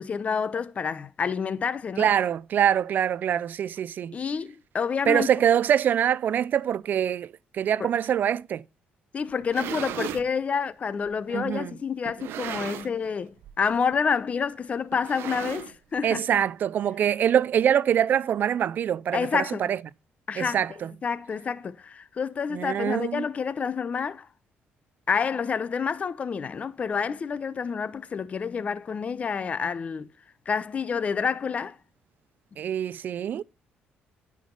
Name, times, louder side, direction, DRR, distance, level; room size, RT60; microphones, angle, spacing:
voice 1, 0.0-2.1 4.1-5.3 7.8-7.9 9.1-16.2 19.1-19.7 20.3-24.3 25.1-30.1 30.5-31.8, left 6 dB, 35° left, 0.7 m, -28 dB
voice 2, 2.0-4.1 5.1-8.6 11.3-11.7 16.0-19.8 20.4-20.9 22.5-23.3 32.6-33.4, right 9 dB, 50° right, 0.4 m, -24 dB
sound 1, 9.3-10.3 11.1-11.2 12.1-13.1 13.4-13.7 13.9-14.0 14.9-16.0, right 11 dB, 80° right, 0.8 m, -36 dB
10.0 x 5.0 x 5.4 m
cardioid pair, 115°, 4 cm